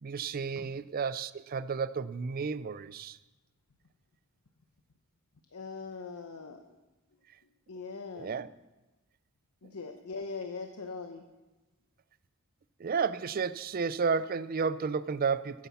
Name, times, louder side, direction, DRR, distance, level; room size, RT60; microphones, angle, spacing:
voice 1, 0.0-3.2 8.1-8.5 12.8-15.7, right 5 dB, 40° right, 0.4 m, -32 dB
voice 2, 5.5-6.8 7.7-8.3 9.6-11.2, left 4 dB, 85° left, 0.9 m, -41 dB
9.9 x 9.8 x 7.0 m
head